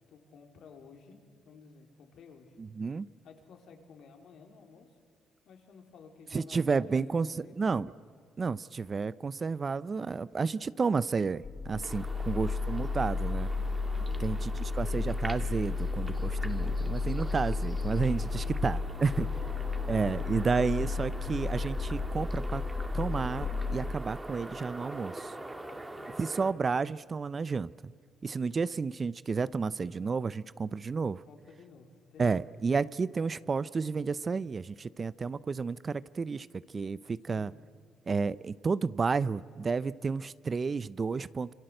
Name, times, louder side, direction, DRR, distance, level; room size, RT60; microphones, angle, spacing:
voice 1, 0.1-1.2 1.4-2.5 3.2-4.9 5.4-7.7 12.0-12.4 14.0-15.2 18.3-20.0 25.6-26.2 31.2-32.4 37.3-37.5, left 5 dB, 75° left, 3 dB, 4.0 m, -54 dB
voice 2, 2.6-3.1 6.3-7.9 8.4-13.5 14.2-14.5 14.8-19.3 19.9-22.6 22.9-25.3 26.2-27.9 28.2-31.2 32.2-36.5 36.7-37.5 38.1-41.5, right 4 dB, 35° right, 18 dB, 0.6 m, -31 dB
sound 1, 11.4-23.9, left 4 dB, 40° left, 1.6 m, -33 dB
sound 2, 11.8-26.5, right 2 dB, 15° right, 2.3 m, -44 dB
27.0 x 26.0 x 7.9 m, 2.1 s
cardioid pair, 90°, 0 cm